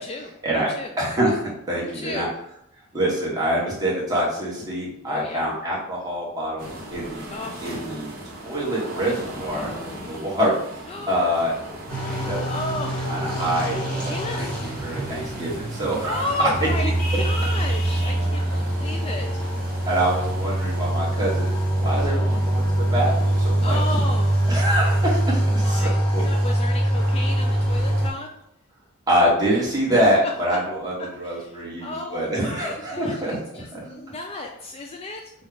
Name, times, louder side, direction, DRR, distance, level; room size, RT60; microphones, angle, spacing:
voice 1, 0.0-1.0 1.7-2.4 5.0-5.6 7.3-7.9 9.3-10.1 10.9-11.5 12.4-13.1 14.0-14.7 16.0-20.2 22.0-22.5 23.6-24.5 25.5-28.3 31.2-35.3, left 2 dB, 25° left, 2 dB, 0.3 m, -34 dB
voice 2, 1.0-2.3 2.9-7.2 7.6-8.1 8.4-9.7 10.1-11.5 12.2-12.4 13.1-14.5 14.8-16.2 19.8-22.6 22.9-23.8 24.5-26.3 29.1-33.8, equal, 15° right, -6 dB, 1.4 m, -25 dB
sound 1, 6.6-23.4, equal, 40° right, 1.2 m, -39 dB
sound 2, 11.9-28.1, right 1 dB, 5° left, 1.3 m, -23 dB
5.3 x 2.4 x 3.8 m, 0.75 s
head